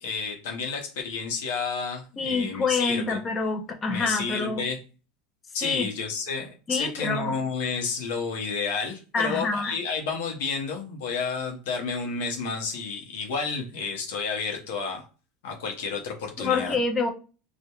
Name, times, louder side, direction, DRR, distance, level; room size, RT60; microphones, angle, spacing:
voice 1, 0.0-3.2 3.9-4.8 5.5-15.0 15.4-16.8, left 5 dB, 85° left, 0.7 m, -31 dB
voice 2, 2.2-4.6 5.6-5.9 6.7-7.4 9.1-9.7 16.4-17.1, left 4 dB, 20° left, 0.3 m, -27 dB
2.3 x 2.1 x 2.9 m
supercardioid pair, 160°, 0 cm